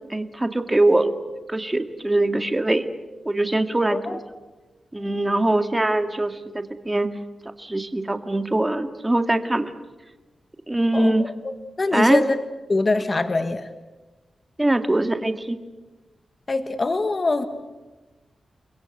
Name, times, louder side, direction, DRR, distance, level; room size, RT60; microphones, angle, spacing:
voice 1, 0.1-1.1 1.5-2.9 3.3-4.2 4.9-7.1 7.6-9.7 10.7-11.3 11.9-12.2 14.6-15.6, right 2 dB, 15° right, 7 dB, 2.0 m, -22 dB
voice 2, 11.8-12.4 12.7-13.6 16.5-17.5, left 3 dB, 35° left, 9 dB, 1.6 m, -23 dB
29.5 x 22.5 x 7.9 m, 1.2 s
wide cardioid pair, 130°, 0 cm